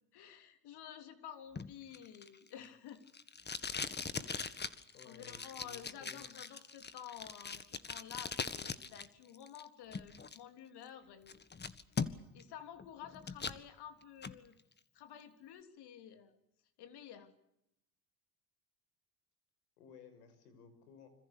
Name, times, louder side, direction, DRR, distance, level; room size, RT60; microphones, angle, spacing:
voice 1, 0.1-3.0 4.2-4.6 5.0-11.4 12.3-14.6 14.9-16.4 16.8-17.3, left 9 dB, 55° left, 8 dB, 3.5 m, -51 dB
Packing tape duct tape, 1.6-9.1 9.3-10.4 10.8-10.9 11.3-12.4 12.8-13.6 14.0-14.4, left 5 dB, 20° left, 1.8 m, -41 dB
voice 2, 4.9-6.2 19.8-21.1, left 6 dB, 80° left, 10 dB, 6.1 m, -57 dB
26.5 x 26.5 x 6.9 m, 0.80 s
hypercardioid pair, 75°, 46 cm